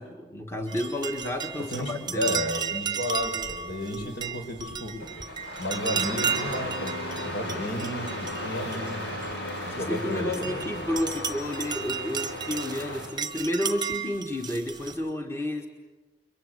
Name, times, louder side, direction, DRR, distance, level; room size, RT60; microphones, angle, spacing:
voice 1, 0.0-2.4 9.7-15.7, left 1 dB, 15° left, 2 dB, 1.6 m, -31 dB
sound 1, 0.7-9.5 10.0-15.0, right 6 dB, 25° right, 1.0 m, -34 dB
voice 2, 1.7-5.0 5.6-9.1 9.7-10.6, left 1 dB, 60° left, 4 dB, 5.7 m, -33 dB
Engine starting, 5.0-13.1, left 1 dB, 80° left, 7.5 m, -35 dB
30.0 x 23.0 x 8.1 m, 1.3 s
head